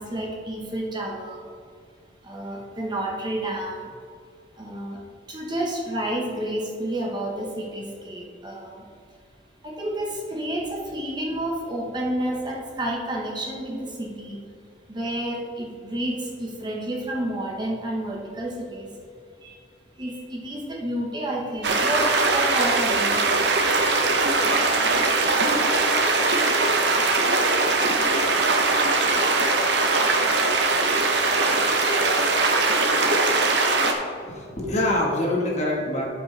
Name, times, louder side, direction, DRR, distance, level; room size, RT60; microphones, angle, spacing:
voice 1, 0.0-1.4 2.2-3.9 4.6-5.0 5.3-8.9 9.6-14.4 14.9-18.9 19.4-19.6 20.0-23.4, right 1 dB, 25° right, -2 dB, 1.2 m, -30 dB
sound 1, 21.6-33.9, right 3 dB, 70° right, 0.9 m, -21 dB
voice 2, 34.2-36.0, left 1 dB, 40° left, -2 dB, 1.6 m, -25 dB
13.0 x 5.2 x 3.4 m, 2.2 s
head